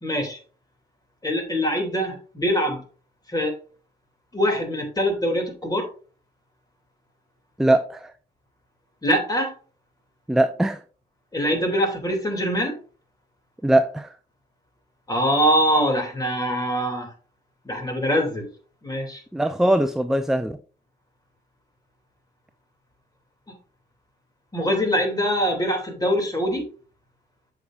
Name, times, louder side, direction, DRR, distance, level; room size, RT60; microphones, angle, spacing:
voice 1, 0.0-0.4 1.2-2.8 3.3-3.6 4.3-5.9 9.0-9.5 11.3-12.8 15.1-17.1 17.6-18.5 18.8-19.2 23.5-23.6 24.5-26.7, equal, 20° left, 2.7 m, -23 dB
voice 2, 7.6-8.1 10.3-10.8 13.6-14.1 19.3-20.6, right 1 dB, ahead, 0.5 m, -21 dB
7.9 x 7.0 x 2.5 m
cardioid pair, 80°, 18 cm